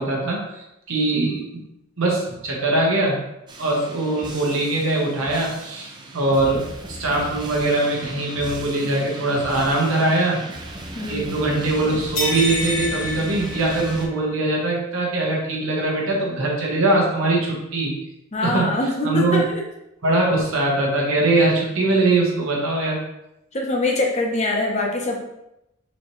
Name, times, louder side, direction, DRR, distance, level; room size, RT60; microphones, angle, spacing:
voice 1, 0.0-1.6 2.0-3.2 3.6-5.9 6.1-6.6 6.9-10.4 11.1-17.9 18.4-19.5 20.0-23.0, right 2 dB, 70° right, -3 dB, 1.0 m, -22 dB
sound 1, 3.5-14.1, right 1 dB, 20° right, 0.4 m, -37 dB
voice 2, 10.9-11.4 18.3-19.6 23.5-25.2, left 2 dB, 30° left, 0 dB, 0.7 m, -23 dB
sound 2, 12.2-14.3, left 1 dB, 70° left, 1.2 m, -28 dB
4.1 x 2.9 x 3.0 m, 0.85 s
head